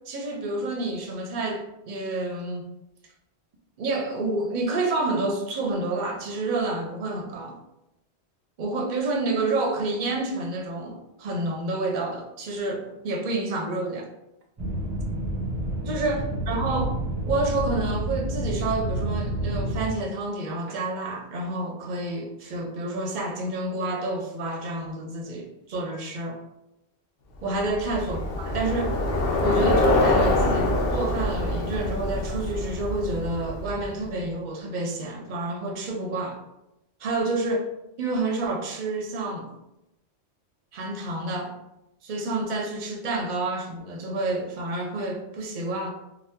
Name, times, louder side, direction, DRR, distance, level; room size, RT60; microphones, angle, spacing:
voice 1, 0.1-2.6 3.8-7.6 8.6-14.1 15.9-17.0 17.3-26.4 27.4-29.0 29.4-36.4 37.0-37.7 38.0-39.5 40.7-41.5 42.0-45.9, right 2 dB, 50° right, 1 dB, 0.6 m, -29 dB
sound 1, 14.6-19.9, right 1 dB, 15° right, 0.8 m, -29 dB
Bicycle, 27.5-34.0, left 2 dB, 65° left, 0.7 m, -25 dB
2.8 x 2.1 x 3.4 m, 0.89 s
omnidirectional pair, 1.1 m